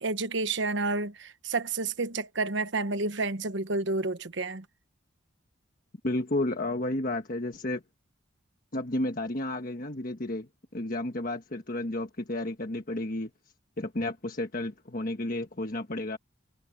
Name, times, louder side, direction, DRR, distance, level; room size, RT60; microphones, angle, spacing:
voice 1, 0.0-4.6, right 3 dB, 65° right, 1.1 m, -30 dB
voice 2, 6.0-7.8 8.7-13.3 13.8-16.2, left 1 dB, 45° left, 1.4 m, -32 dB
head